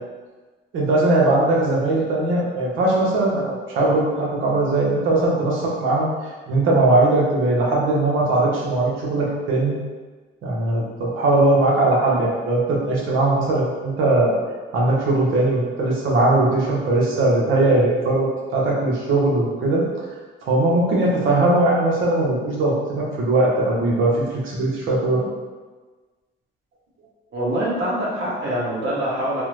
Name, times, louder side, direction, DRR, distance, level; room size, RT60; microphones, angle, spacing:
voice 1, 0.7-6.1 6.5-9.8 10.4-14.4 14.7-19.8 20.5-25.2, right 2 dB, 85° right, -3 dB, 0.8 m, -20 dB
voice 2, 27.3-29.4, right 1 dB, 65° right, -6 dB, 1.1 m, -24 dB
3.3 x 2.0 x 3.0 m, 1.3 s
cardioid pair, 90°, 20 cm